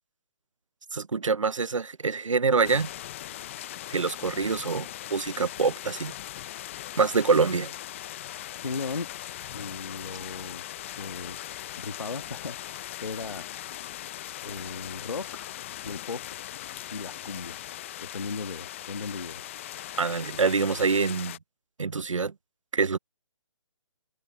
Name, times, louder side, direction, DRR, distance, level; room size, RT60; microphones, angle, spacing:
voice 1, 0.9-2.9 3.9-6.1 7.0-7.7 20.0-21.4 21.8-22.3 22.7-23.0, right 4 dB, 85° right, 0.8 m, -25 dB
sound 1, 2.6-21.4, left 13 dB, 25° left, 0.5 m, -40 dB
voice 2, 8.6-9.1 9.5-10.6 11.0-11.4 11.8-13.5 14.4-16.2 16.9-19.6, left 4 dB, 80° left, 1.7 m, -37 dB
figure-of-eight pair, 150°, 16 cm